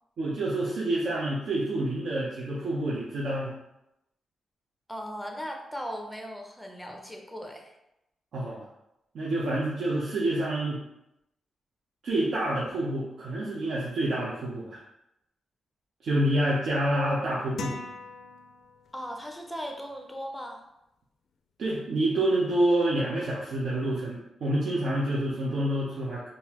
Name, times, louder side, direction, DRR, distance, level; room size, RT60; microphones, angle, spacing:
voice 1, 0.2-3.5 8.3-8.6 9.1-10.8 12.0-14.8 16.0-17.8 21.6-26.2, right 1 dB, 65° right, -6 dB, 0.6 m, -27 dB
voice 2, 4.9-7.7 18.9-20.6, equal, 5° left, 2 dB, 0.5 m, -38 dB
sound 1, 17.6-19.1, left 4 dB, 65° left, 0.3 m, -40 dB
3.8 x 2.5 x 2.9 m, 0.87 s
cardioid pair, 120°, 0 cm